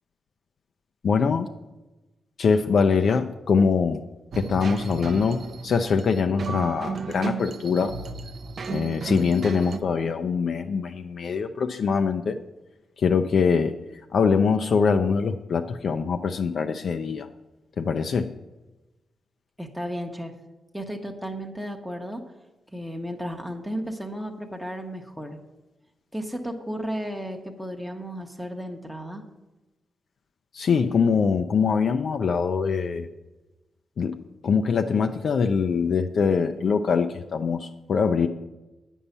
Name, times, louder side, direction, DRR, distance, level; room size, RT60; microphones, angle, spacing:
voice 1, 1.0-1.5 2.4-4.0 4.4-7.9 8.7-12.4 13.0-13.8 14.1-17.3 17.8-18.3 30.5-33.1 34.0-34.2 34.4-38.3, left 5 dB, 55° left, 6 dB, 0.4 m, -23 dB
sound 1, 4.3-9.8, right 5 dB, 45° right, 0.5 m, -34 dB
voice 2, 19.6-20.3 20.7-22.2 22.7-25.4 26.1-29.2, equal, ahead, 3 dB, 0.9 m, -34 dB
10.0 x 5.4 x 8.2 m, 1.1 s
wide cardioid pair, 160°, 0 cm